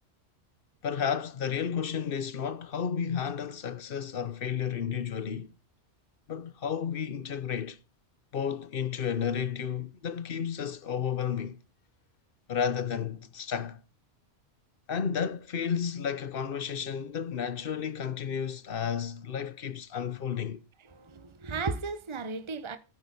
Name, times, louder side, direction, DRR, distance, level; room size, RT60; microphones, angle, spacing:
voice 1, 0.8-5.5 6.3-7.8 8.3-11.6 12.5-13.8 14.9-20.6, left 7 dB, 55° left, 1.0 m, -32 dB
voice 2, 20.9-22.8, right 4 dB, 25° right, 1.0 m, -35 dB
13.5 x 8.5 x 5.5 m
omnidirectional pair, 1.2 m